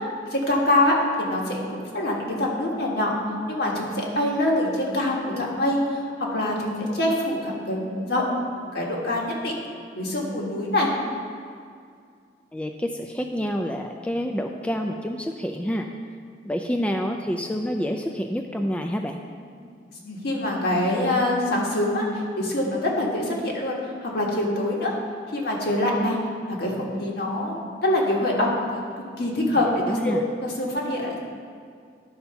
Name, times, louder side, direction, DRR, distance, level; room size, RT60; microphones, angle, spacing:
voice 1, 0.3-3.1 3.5-6.0 6.3-8.2 8.6-9.5 9.9-10.9 20.0-22.1 22.4-23.8 24.0-24.9 25.3-26.2 26.4-28.8 29.2-31.2, left 1 dB, 65° left, -2 dB, 1.6 m, -24 dB
voice 2, 12.5-15.9 16.4-19.2 29.9-30.2, equal, 5° left, 3 dB, 0.3 m, -28 dB
11.5 x 4.3 x 5.7 m, 2.2 s
head